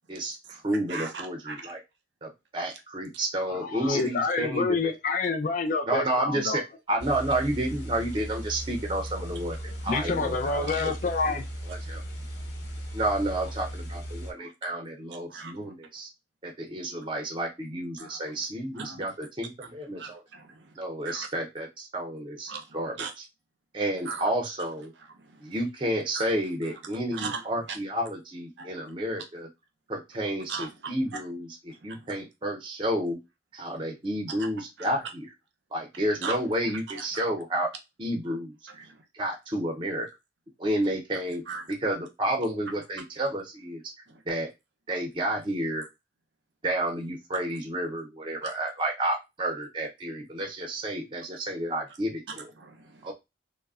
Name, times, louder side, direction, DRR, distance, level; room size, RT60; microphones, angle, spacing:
voice 1, 0.1-1.8 2.2-4.9 5.9-6.6 6.9-9.6 9.8-10.9 11.7-12.0 12.9-16.1 16.4-20.2 20.8-23.2 23.7-24.9 25.4-29.5 29.9-33.2 33.5-35.3 35.7-37.7 38.0-38.8 39.1-40.1 40.6-43.8 44.3-44.5 44.9-45.8 46.6-52.5 53.0-53.1, right 1 dB, 30° right, 0.5 m, -31 dB
voice 2, 0.9-1.7 10.4-10.9 14.4-14.5 15.3-15.5 18.0-18.2 18.7-19.1 20.0-20.7 21.0-21.3 22.5-22.6 23.0-23.1 24.1-24.3 25.3-25.5 26.1-26.3 27.1-27.4 27.7-27.8 28.6-28.7 30.5-31.2 31.9-32.0 34.4-34.5 34.8-34.9 36.2-36.4 37.0-37.1 38.8-39.0 41.5-41.6 44.1-44.2 48.4-48.5 52.3-53.1, right 5 dB, 85° right, 0.6 m, -38 dB
voice 3, 3.5-6.6 9.9-11.5, left 4 dB, 50° left, 0.4 m, -28 dB
sound 1, 7.0-14.3, equal, 90° left, 0.9 m, -37 dB
3.1 x 2.1 x 2.3 m
head